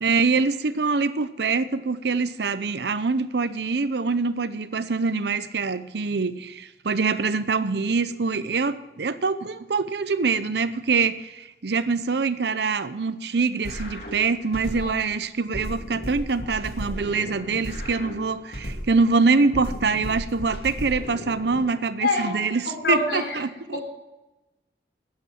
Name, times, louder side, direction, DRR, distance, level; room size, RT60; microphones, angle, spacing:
voice 1, 0.0-23.8, right 4 dB, 75° right, 0.7 m, -24 dB
sound 1, 13.6-15.1 15.5-19.1 19.5-21.6, equal, 60° left, 2.8 m, -35 dB
voice 2, 22.0-22.4 22.7-23.4 23.7-23.8, left 3 dB, 85° left, 3.8 m, -26 dB
13.0 x 9.6 x 6.0 m
head